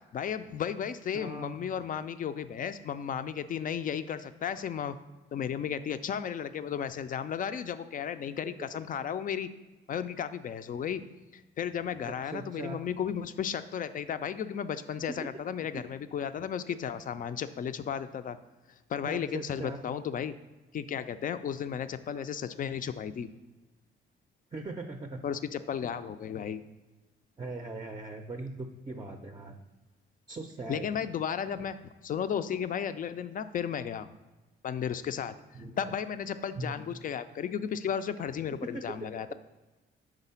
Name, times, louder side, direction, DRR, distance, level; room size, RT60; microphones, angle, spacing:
voice 1, 0.1-5.0 5.3-9.5 9.9-11.0 11.3-18.4 18.9-20.4 20.7-23.3 25.2-26.6 30.7-31.8 32.0-34.1 34.6-35.4 35.8-39.3, left 8 dB, 45° left, 11 dB, 0.4 m, -34 dB
voice 2, 1.1-1.6 12.0-12.8 15.7-15.8 19.1-19.8 24.5-25.2 27.4-29.6 30.3-30.9 35.5-35.8 36.6-36.7 38.7-38.8, right 2 dB, 20° right, 4 dB, 0.5 m, -40 dB
4.9 x 3.7 x 5.5 m, 1.1 s
cardioid pair, 90°, 20 cm